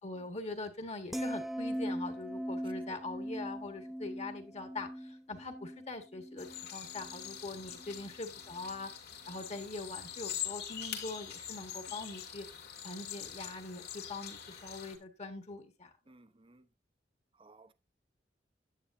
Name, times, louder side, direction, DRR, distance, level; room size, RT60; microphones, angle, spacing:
voice 1, 0.0-8.9 9.3-12.5 12.8-15.9, left 3 dB, 40° left, 1.5 m, -43 dB
sound 1, 1.1-7.4 7.7-8.1, equal, ahead, 0.4 m, -40 dB
voice 2, 2.6-3.0 7.5-7.9 11.8-12.1 16.1-16.7 17.3-17.7, right 2 dB, 30° right, 0.8 m, -60 dB
sound 2, 6.4-15.0, left 9 dB, 65° left, 2.4 m, -44 dB
10.0 x 8.7 x 2.6 m
head